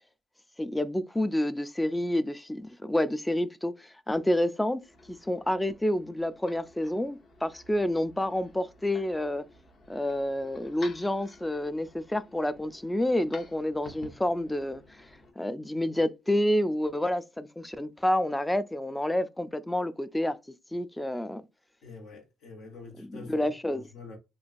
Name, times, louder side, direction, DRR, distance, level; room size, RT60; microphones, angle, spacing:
voice 1, 0.6-4.8 5.1-9.4 9.9-14.8 15.4-20.4 20.7-21.4 23.0-23.8, left 1 dB, 10° left, 0.3 m, -29 dB
sound 1, 4.7-15.3, left 3 dB, 50° left, 0.9 m, -52 dB
voice 2, 21.8-24.2, left 3 dB, 80° left, 1.2 m, -46 dB
3.0 x 2.4 x 2.5 m
cardioid pair, 90°, 0 cm